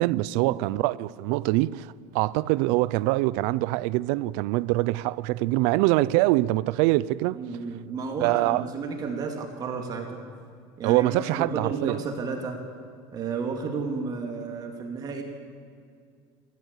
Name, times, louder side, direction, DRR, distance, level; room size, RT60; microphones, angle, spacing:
voice 1, 0.0-7.4 8.2-8.6 10.8-12.0, right 18 dB, 75° right, 0.5 m, -24 dB
voice 2, 7.3-10.2 10.8-12.6 13.1-15.2, right 4 dB, 35° right, 2.5 m, -32 dB
29.5 x 14.0 x 8.3 m
cardioid pair, 155°, 12 cm